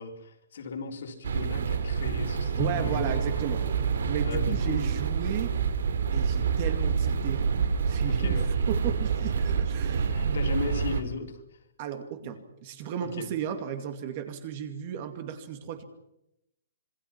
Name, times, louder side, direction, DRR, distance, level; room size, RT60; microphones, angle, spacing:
voice 1, 0.0-3.1 4.2-4.9 8.0-8.5 10.1-11.6 12.2-12.3 13.0-13.3, left 5 dB, 60° left, 3 dB, 4.0 m, -36 dB
sound 1, 1.2-11.0, right 6 dB, 70° right, 2.9 m, -27 dB
voice 2, 2.5-3.6 4.1-5.5 6.1-7.5 7.9-10.6 11.8-15.8, right 9 dB, 30° right, 8 dB, 2.3 m, -35 dB
Bowed string instrument, 2.6-6.3, right 2 dB, 5° right, 1.8 m, -43 dB
26.5 x 23.0 x 5.9 m, 0.83 s
hypercardioid pair, 175°, 0 cm